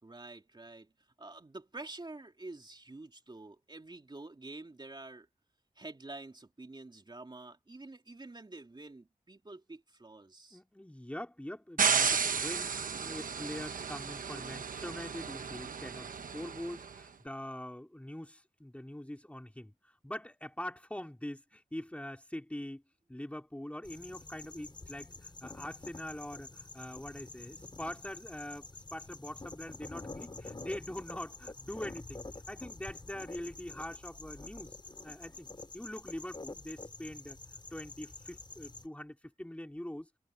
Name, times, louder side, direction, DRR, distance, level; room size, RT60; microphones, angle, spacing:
voice 1, 0.0-5.3 5.7-10.6, right 2 dB, 30° right, 3.1 m, -48 dB
voice 2, 10.5-19.7 20.0-22.8 23.1-34.8 35.0-35.5 35.7-37.4 37.7-40.1, left 1 dB, 10° left, 3.9 m, -43 dB
sound 1, 11.8-16.9, right 6 dB, 75° right, 1.1 m, -33 dB
sound 2, 23.8-38.9, left 3 dB, 35° left, 5.0 m, -48 dB
wide cardioid pair, 75°, 14 cm